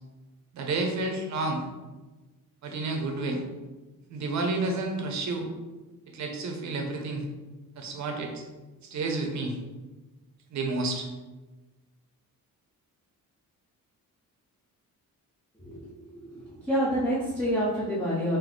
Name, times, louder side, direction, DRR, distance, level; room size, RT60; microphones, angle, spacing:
voice 1, 0.5-1.6 2.6-3.4 4.1-5.5 6.1-7.2 7.8-8.4 8.8-9.5 10.5-11.1, right 2 dB, 55° right, 3 dB, 0.7 m, -30 dB
voice 2, 15.6-18.4, equal, 5° left, -8 dB, 0.5 m, -28 dB
3.8 x 2.6 x 3.7 m, 1.2 s
wide cardioid pair, 175°, 35 cm